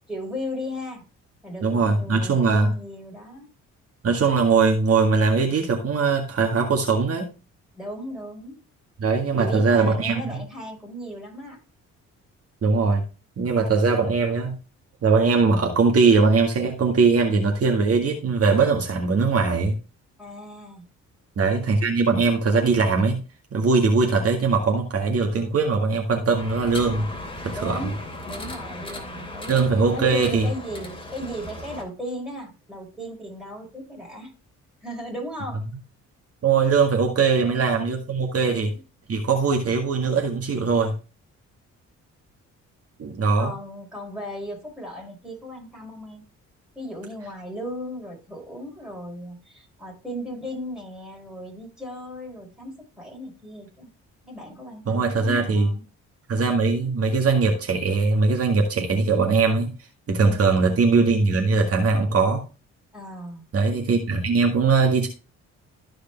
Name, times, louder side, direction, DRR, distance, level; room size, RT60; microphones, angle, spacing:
voice 1, 0.1-1.1 1.4-3.5 7.7-8.6 9.4-11.6 20.2-20.8 27.5-28.0 28.2-29.6 29.9-34.3 34.8-35.6 37.3-37.6 38.4-38.7 43.4-46.2 46.7-53.9 54.2-55.8 60.2-60.5 62.9-63.5, equal, ahead, 0 dB, 4.8 m, -36 dB
voice 2, 1.6-2.7 4.0-7.3 9.0-10.2 12.6-13.0 13.4-14.6 15.0-19.7 21.4-23.2 23.5-27.1 27.4-27.8 29.5-30.5 36.4-38.7 39.1-40.9 43.0-43.5 54.9-55.7 56.3-59.7 60.1-62.4 63.5-65.1, right 4 dB, 50° right, 2 dB, 1.9 m, -21 dB
sound 1, 26.4-31.8, left 1 dB, 15° left, 2.9 m, -37 dB
14.0 x 5.0 x 3.4 m, 0.32 s
cardioid pair, 90°, 30 cm